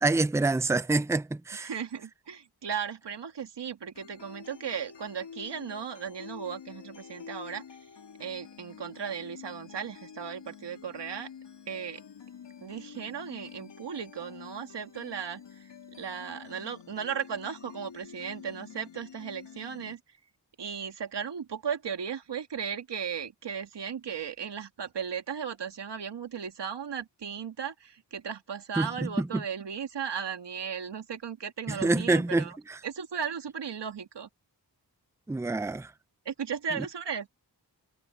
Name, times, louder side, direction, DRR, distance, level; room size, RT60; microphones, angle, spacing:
voice 1, 0.0-1.7 28.8-29.4 31.7-32.8 35.3-35.9, right 2 dB, 5° right, 0.5 m, -27 dB
voice 2, 1.6-7.6 8.2-11.3 11.7-12.0 12.6-20.2 20.6-32.6 32.8-34.3 36.3-37.3, right 7 dB, 75° right, 2.1 m, -36 dB
sound 1, 4.0-20.0, left 7 dB, 85° left, 2.7 m, -48 dB
wide cardioid pair, 90°, 41 cm